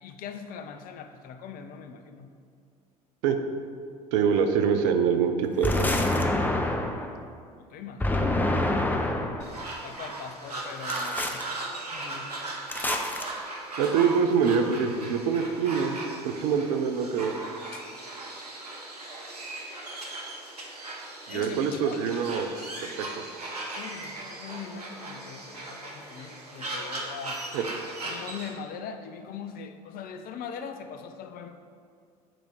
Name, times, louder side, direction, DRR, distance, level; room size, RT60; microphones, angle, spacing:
voice 1, 0.0-2.3 7.6-9.4 9.8-11.4 11.9-12.3 17.7-17.9 21.3-22.2 23.7-27.4 28.0-31.5, left 6 dB, 50° left, 7 dB, 0.7 m, -41 dB
voice 2, 4.1-5.9 13.8-16.0 16.2-17.3 21.3-22.5 22.8-23.1 27.5-27.6, right 6 dB, 60° right, 7 dB, 0.8 m, -25 dB
sound 1, 5.6-7.1 8.0-9.5 10.9-11.4 12.7-13.2, left 1 dB, 10° left, 0.8 m, -26 dB
sound 2, 9.4-28.5, right 2 dB, 85° right, 1.1 m, -38 dB
7.7 x 5.1 x 6.3 m, 2.2 s
figure-of-eight pair, 65°, 20 cm